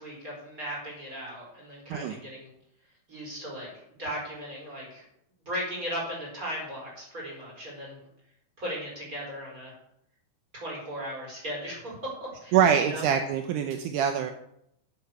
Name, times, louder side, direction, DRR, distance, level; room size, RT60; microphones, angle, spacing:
voice 1, 0.0-2.5 3.1-3.7 4.0-5.0 5.4-8.0 8.6-9.7 10.5-13.0, equal, 20° right, -4 dB, 5.1 m, -37 dB
voice 2, 12.5-14.3, right 8 dB, 75° right, 6 dB, 2.0 m, -24 dB
10.5 x 7.9 x 6.7 m, 0.75 s
omnidirectional pair, 4.4 m